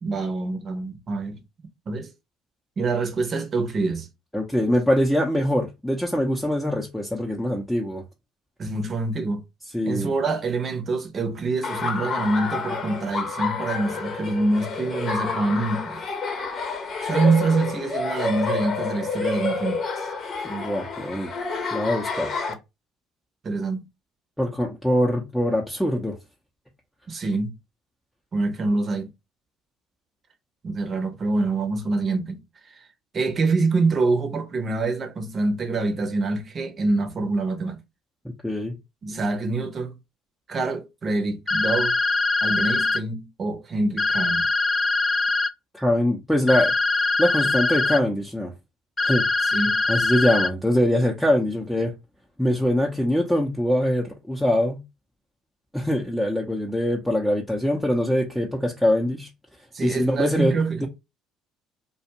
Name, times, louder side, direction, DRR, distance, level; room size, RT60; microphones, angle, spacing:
voice 1, 0.0-1.4 1.9-2.1 2.8-4.1 8.6-9.4 9.8-16.0 17.0-20.1 23.4-23.8 27.1-27.5 28.3-29.1 30.6-32.4 32.7-32.8 33.1-37.8 39.0-39.9 40.5-42.0 42.4-44.5 49.5-49.8 59.7-60.9, right 3 dB, 40° right, 0.8 m, -25 dB
voice 2, 4.3-8.0 9.7-10.1 20.4-21.3 21.7-22.3 24.4-26.1 38.4-38.7 45.7-46.7 47.2-48.5 49.0-49.2 49.9-51.9 52.4-54.8 55.7-59.3 59.8-60.5 60.8-60.9, left 1 dB, 5° left, 0.7 m, -23 dB
Laughter, 11.6-22.5, left 4 dB, 45° left, 0.8 m, -29 dB
sound 1, 41.5-43.0 44.0-45.5 46.5-48.0 49.0-50.5, left 3 dB, 20° left, 0.3 m, -22 dB
2.5 x 2.3 x 2.8 m
hypercardioid pair, 70°, 0 cm